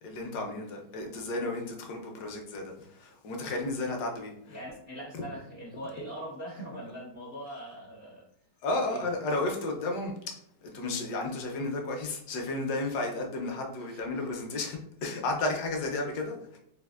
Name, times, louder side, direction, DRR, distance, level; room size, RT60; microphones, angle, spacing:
voice 1, 0.0-4.6 8.6-16.6, left 2 dB, 70° left, 2 dB, 1.2 m, -33 dB
voice 2, 4.5-8.2 8.9-9.0 13.8-14.2, right 1 dB, 85° left, -6 dB, 0.5 m, -42 dB
4.2 x 2.4 x 2.3 m, 0.72 s
omnidirectional pair, 1.9 m